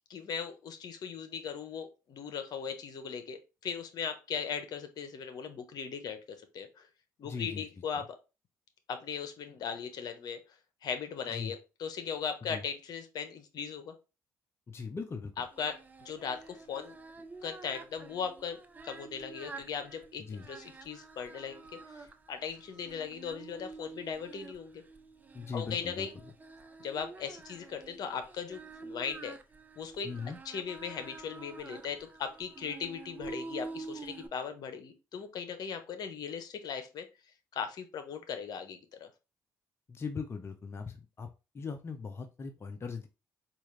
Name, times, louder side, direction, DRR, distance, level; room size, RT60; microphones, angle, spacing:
voice 1, 0.1-6.2 6.5-6.9 7.2-8.0 8.9-10.4 10.8-13.9 15.4-16.9 17.4-22.0 22.3-24.8 25.5-26.1 26.8-29.4 29.8-30.1 30.4-37.1 37.5-39.1, left 7 dB, 60° left, 8 dB, 0.9 m, -38 dB
voice 2, 7.2-7.6 8.0-8.1 11.3-11.5 12.4-12.6 14.7-15.3 20.2-20.5 25.3-26.1 30.0-30.4 39.9-43.1, left 5 dB, 35° left, 6 dB, 0.6 m, -39 dB
Singing, 15.5-34.3, right 3 dB, 20° right, 0.8 m, -48 dB
4.4 x 2.5 x 3.2 m, 0.28 s
supercardioid pair, 65°, 7 cm